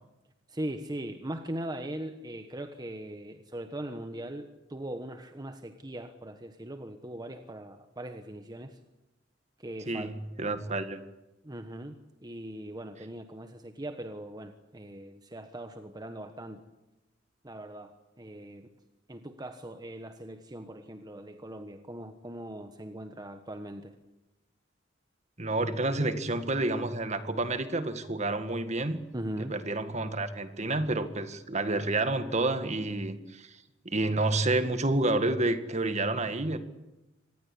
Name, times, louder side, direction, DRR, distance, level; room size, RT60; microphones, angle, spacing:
voice 1, 0.5-8.8 9.6-10.1 11.4-16.6 17.4-18.7 19.1-23.9 29.1-29.5, right 1 dB, 20° right, 7 dB, 1.3 m, -40 dB
voice 2, 9.9-11.0 25.4-29.0 29.4-33.5 33.8-36.6, right 2 dB, 40° right, 10 dB, 1.9 m, -29 dB
26.0 x 19.5 x 8.6 m, 0.98 s
head